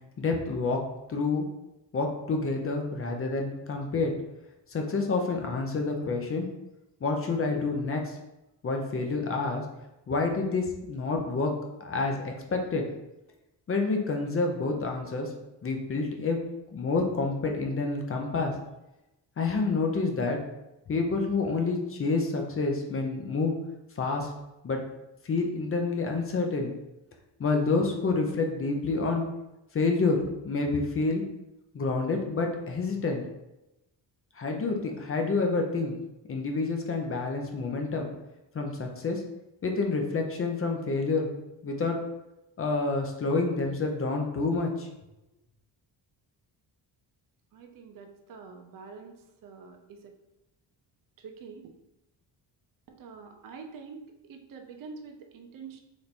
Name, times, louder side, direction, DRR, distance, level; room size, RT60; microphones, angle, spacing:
voice 1, 0.2-0.8 1.1-1.5 1.9-4.1 4.7-6.5 7.0-8.2 8.6-9.6 10.1-11.5 11.8-12.8 13.7-15.3 15.6-16.4 16.7-18.5 19.4-20.4 20.9-23.6 24.0-24.3 24.6-24.8 25.2-26.7 27.4-29.3 29.7-30.2 30.4-31.2 31.7-33.2 34.4-36.0 36.3-38.1 38.5-39.2 39.6-41.3 41.6-42.0 42.6-44.9, left 3 dB, 30° left, 2 dB, 0.6 m, -28 dB
voice 2, 47.5-50.1 51.2-51.7 52.9-55.8, right 5 dB, 50° right, 4 dB, 0.5 m, -46 dB
3.4 x 3.0 x 4.0 m, 0.94 s
wide cardioid pair, 155°, 44 cm